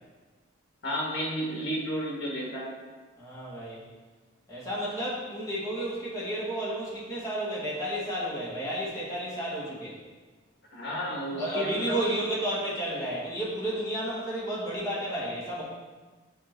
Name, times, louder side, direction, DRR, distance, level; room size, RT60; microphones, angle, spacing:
voice 1, 0.8-2.7 10.7-12.1, equal, 60° left, -2 dB, 1.4 m, -32 dB
voice 2, 3.2-3.8 4.5-10.0 11.3-15.6, right 1 dB, 15° left, -8 dB, 1.7 m, -32 dB
7.3 x 2.9 x 4.5 m, 1.4 s
head